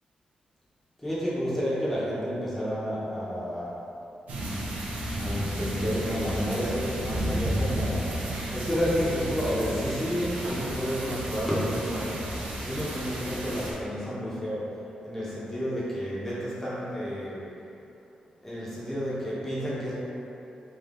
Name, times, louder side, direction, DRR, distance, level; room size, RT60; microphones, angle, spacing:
voice 1, 1.0-3.8 5.2-8.1 8.5-12.3 12.6-14.7 15.0-17.4 18.4-19.9, equal, 10° left, -9 dB, 1.0 m, -30 dB
sound 1, 4.3-13.7, right 1 dB, 85° right, 0.7 m, -32 dB
3.6 x 2.6 x 3.8 m, 2.9 s
wide cardioid pair, 125°, 2 cm